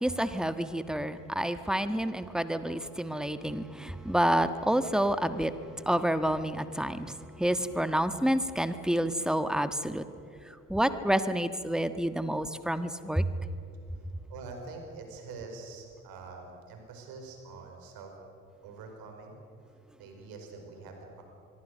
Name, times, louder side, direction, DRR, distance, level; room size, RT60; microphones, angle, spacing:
voice 1, 0.0-10.1 10.7-13.3, right 1 dB, ahead, 11 dB, 1.6 m, -29 dB
voice 2, 14.3-18.1 18.6-19.4 20.0-21.2, right 4 dB, 65° right, 3 dB, 5.0 m, -45 dB
25.0 x 24.0 x 6.7 m, 2.6 s
figure-of-eight pair, 45°, 39 cm